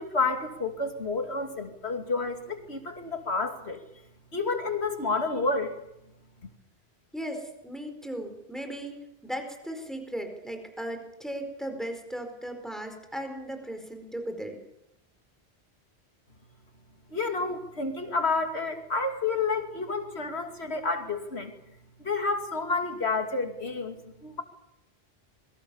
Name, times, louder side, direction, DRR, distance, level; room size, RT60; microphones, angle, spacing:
voice 1, 0.0-3.8 4.3-5.7 17.1-21.5 22.0-24.4, left 3 dB, 75° left, 5 dB, 2.9 m, -30 dB
voice 2, 7.1-14.6, right 1 dB, ahead, 5 dB, 4.7 m, -37 dB
27.0 x 22.5 x 7.1 m, 0.81 s
omnidirectional pair, 1.1 m